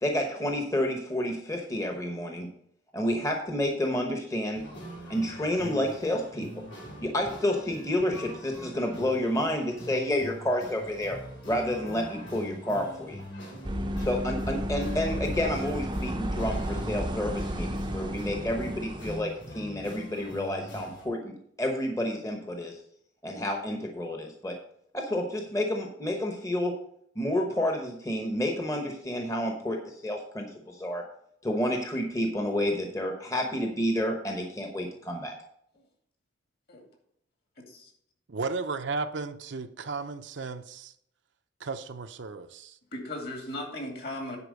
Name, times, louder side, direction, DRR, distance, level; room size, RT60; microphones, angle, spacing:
voice 1, 0.0-2.5 2.9-4.7 5.1-6.6 7.0-11.2 11.5-13.2 14.0-21.3 21.6-22.8 23.2-24.6 24.9-26.8 27.2-31.1 31.4-35.3, left 1 dB, 15° left, 3 dB, 0.9 m, -30 dB
sound 1, 4.5-21.1, equal, 70° left, 3.5 m, -43 dB
sound 2, 13.6-19.2, equal, 25° right, 0.6 m, -32 dB
voice 2, 38.3-40.9 41.6-42.8, right 4 dB, 70° right, 8 dB, 0.6 m, -34 dB
voice 3, 42.9-44.4, left 1 dB, 55° left, 2 dB, 2.4 m, -37 dB
9.9 x 4.4 x 6.4 m, 0.70 s
head